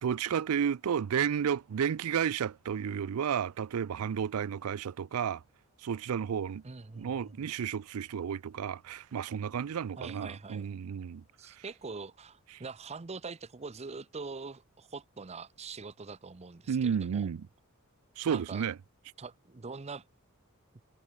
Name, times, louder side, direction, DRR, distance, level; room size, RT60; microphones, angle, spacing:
voice 1, 0.0-5.4 5.8-6.6 7.0-11.2 16.7-17.5 18.2-18.7, right 7 dB, 75° right, 0.4 m, -32 dB
voice 2, 6.6-7.4 10.0-10.7 11.4-17.3 18.3-18.7 19.2-20.0, right 4 dB, 30° right, 0.6 m, -43 dB
head